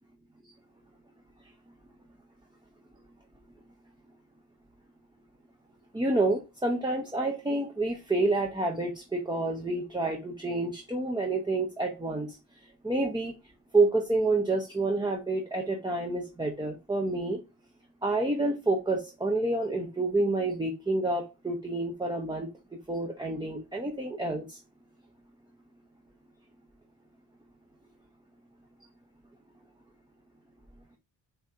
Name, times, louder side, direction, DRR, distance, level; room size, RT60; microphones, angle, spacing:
voice 1, 5.9-12.4 12.8-13.3 13.7-17.4 18.0-22.5 22.9-24.6, right 2 dB, 10° right, 0.8 m, -28 dB
7.9 x 2.8 x 4.8 m
wide cardioid pair, 155°, 42 cm